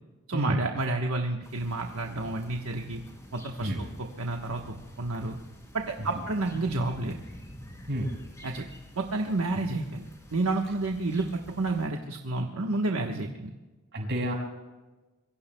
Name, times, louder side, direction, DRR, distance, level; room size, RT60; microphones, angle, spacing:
voice 1, 0.3-3.0 3.3-3.9 4.2-5.4 5.7-7.2 8.4-8.6 8.9-11.3 11.5-13.5, right 2 dB, 75° right, 2 dB, 1.2 m, -30 dB
sound 1, 1.4-11.9, equal, 15° left, 3.1 m, -47 dB
voice 2, 13.9-14.3, right 1 dB, 55° right, 0 dB, 5.5 m, -29 dB
26.5 x 23.0 x 2.3 m, 1.2 s
head